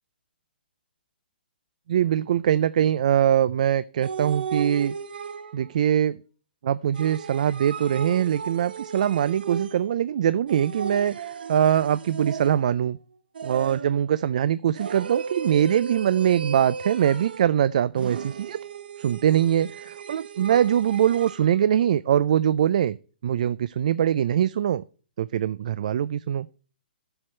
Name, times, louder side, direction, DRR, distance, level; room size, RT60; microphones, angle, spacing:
voice 1, 1.9-4.9 5.5-6.2 6.6-13.0 13.4-18.6 19.0-23.0 23.2-24.8 25.2-26.5, right 10 dB, 45° right, 17 dB, 0.4 m, -22 dB
sound 1, 4.0-5.7 6.9-10.0 10.5-12.8 13.4-14.1 14.7-17.5 18.0-21.5, right 6 dB, 65° right, 1.0 m, -35 dB
12.0 x 7.8 x 4.3 m, 0.39 s
hypercardioid pair, 170°, 5 cm